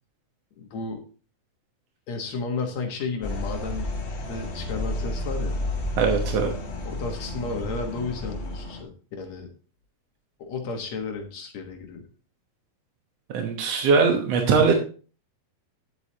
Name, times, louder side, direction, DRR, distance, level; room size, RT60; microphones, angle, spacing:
voice 1, 0.6-1.0 2.1-3.9 4.2-5.6 6.9-9.5 10.4-12.0, left 4 dB, 60° left, 3 dB, 2.1 m, -33 dB
sound 1, 3.2-8.8, left 1 dB, 35° left, 2.4 m, -31 dB
voice 2, 6.0-6.5 13.3-14.7, right 5 dB, 65° right, 3 dB, 1.6 m, -21 dB
11.5 x 8.0 x 2.8 m, 0.38 s
omnidirectional pair, 4.3 m